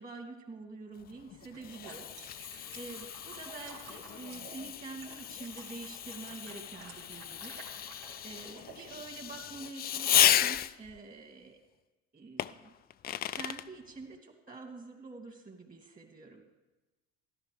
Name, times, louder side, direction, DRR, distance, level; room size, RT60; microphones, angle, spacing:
voice 1, 0.0-7.6 8.2-11.6 12.1-12.7 13.3-16.4, right 3 dB, 25° right, 3 dB, 2.6 m, -47 dB
Fireworks, 1.0-11.0 12.4-13.7, left 11 dB, 30° left, 0.4 m, -33 dB
sound 1, 1.4-8.9, right 4 dB, 70° right, 2.5 m, -52 dB
13.5 x 11.5 x 4.9 m, 1.1 s
supercardioid pair, 95°, 30 cm